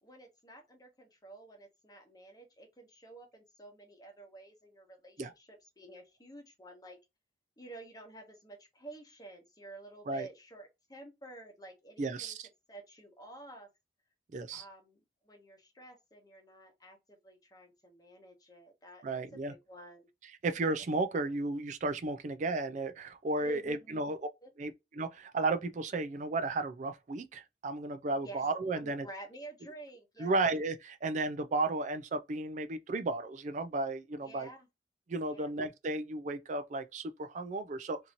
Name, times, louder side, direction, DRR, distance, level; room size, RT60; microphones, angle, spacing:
voice 1, 0.0-7.0 7.6-12.4 12.7-13.7 14.5-20.1 21.3-21.4 23.3-24.0 24.4-24.5 28.2-28.5 28.7-30.4 34.2-34.7 35.3-35.5, right 2 dB, 20° left, 0.9 m, -51 dB
voice 2, 12.0-12.5 14.3-14.6 19.0-19.5 20.4-24.2 24.6-29.1 30.2-34.5 35.1-38.0, right 2 dB, 40° right, 0.4 m, -34 dB
2.9 x 2.7 x 2.5 m
head